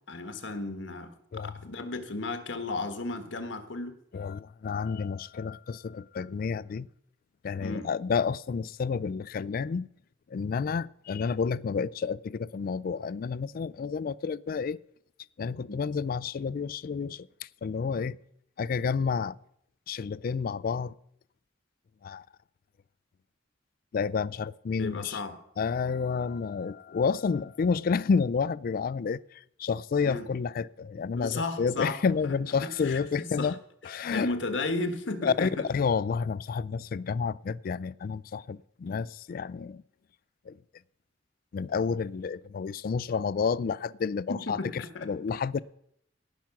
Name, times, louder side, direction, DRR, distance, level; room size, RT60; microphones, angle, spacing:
voice 1, 0.1-3.9 7.6-7.9 15.6-15.8 24.8-25.4 30.0-30.3 31.1-32.3 32.6-33.5 34.0-35.6 44.3-45.1, left 3 dB, 80° left, 1.4 m, -34 dB
voice 2, 4.1-6.9 7.4-9.9 10.3-14.8 15.4-18.2 18.6-19.4 19.9-20.9 22.0-22.3 23.9-25.2 25.6-33.6 33.8-34.3 35.2-39.8 40.5-40.6 41.5-45.6, left 5 dB, 50° left, 0.3 m, -30 dB
17.5 x 5.9 x 5.9 m
head